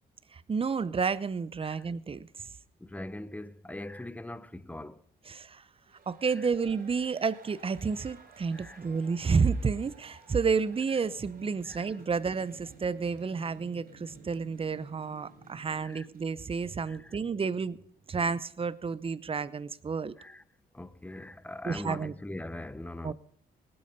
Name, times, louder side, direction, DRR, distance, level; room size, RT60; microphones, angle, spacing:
voice 1, 0.3-2.3 5.3-5.6 6.1-17.8 18.1-20.1 21.6-22.1 23.0-23.1, right 5 dB, 30° right, 0.7 m, -30 dB
voice 2, 2.8-5.0 6.4-6.5 8.5-8.8 11.6-11.9 15.8-16.1 16.8-17.2 20.2-20.4 20.7-23.1, left 1 dB, 5° left, 0.7 m, -41 dB
sound 1, 5.7-16.6 16.8-16.9, right 4 dB, 45° right, 5.1 m, -58 dB
sound 2, 10.0-17.5, right 2 dB, 70° right, 2.9 m, -55 dB
19.0 x 8.8 x 5.1 m
cardioid pair, 90°, 20 cm